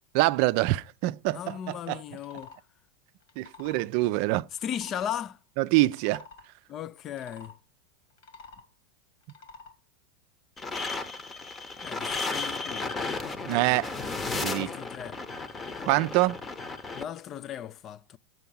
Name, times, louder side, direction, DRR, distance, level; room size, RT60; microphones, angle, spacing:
voice 1, 0.1-2.0 3.4-4.4 5.6-6.2 13.5-13.9 14.3-14.7 15.9-16.4, right 19 dB, 60° right, 0.4 m, -25 dB
voice 2, 1.3-2.5 4.6-5.4 6.7-7.5 11.8-12.9 14.5-15.2 16.9-18.2, left 10 dB, 35° left, 0.4 m, -36 dB
sound 1, 2.1-2.6 3.2-3.9 4.5-5.2 5.8-6.5 7.1-7.5 8.1-8.7 9.2-9.7, left 3 dB, 70° left, 2.2 m, -49 dB
sound 2, 10.6-17.0, left 3 dB, 20° left, 0.9 m, -34 dB
7.8 x 4.6 x 5.3 m
hypercardioid pair, 110°, 0 cm